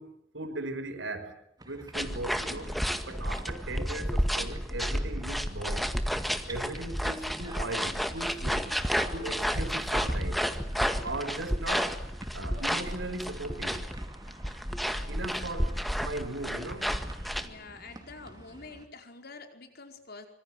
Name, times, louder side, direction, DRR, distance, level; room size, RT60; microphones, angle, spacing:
voice 1, 0.0-1.4 1.7-2.8 3.1-5.9 6.5-8.8 9.1-10.5 11.0-12.0 12.3-13.9 15.1-17.0, right 2 dB, 75° right, 5.4 m, -38 dB
sound 1, 1.6-18.9, right 1 dB, 20° right, 3.9 m, -49 dB
sound 2, 1.9-17.5, equal, ahead, 1.9 m, -31 dB
voice 2, 17.4-20.3, left 3 dB, 55° left, 4.9 m, -47 dB
26.0 x 25.0 x 7.9 m
head